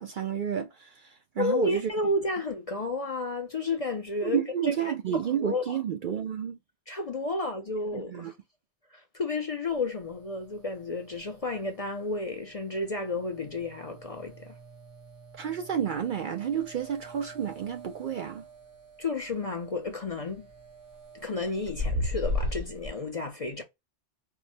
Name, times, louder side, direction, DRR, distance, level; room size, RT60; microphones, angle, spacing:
voice 1, 0.0-1.9 4.2-6.6 7.9-8.3 15.3-18.5, right 8 dB, 60° right, 0.6 m, -31 dB
voice 2, 1.4-4.7 5.1-5.8 6.9-8.3 8.9-14.6 19.0-20.5 21.1-23.6, left 2 dB, 40° left, 0.5 m, -32 dB
sound 1, 9.7-22.9, left 1 dB, 75° right, 1.6 m, -39 dB
4.5 x 2.1 x 2.6 m
omnidirectional pair, 1.2 m